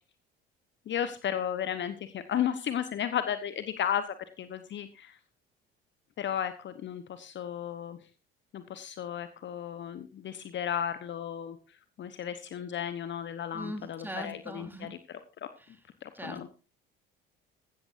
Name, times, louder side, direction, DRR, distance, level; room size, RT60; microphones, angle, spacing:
voice 1, 0.9-4.0 4.4-5.2 6.2-8.0 8.5-11.6 12.0-15.5 16.0-16.5, left 9 dB, 40° left, 11 dB, 1.1 m, -34 dB
voice 2, 13.5-14.9 16.1-16.5, equal, 5° right, 5 dB, 3.2 m, -40 dB
15.5 x 13.0 x 2.7 m, 0.32 s
figure-of-eight pair, 60°, 29 cm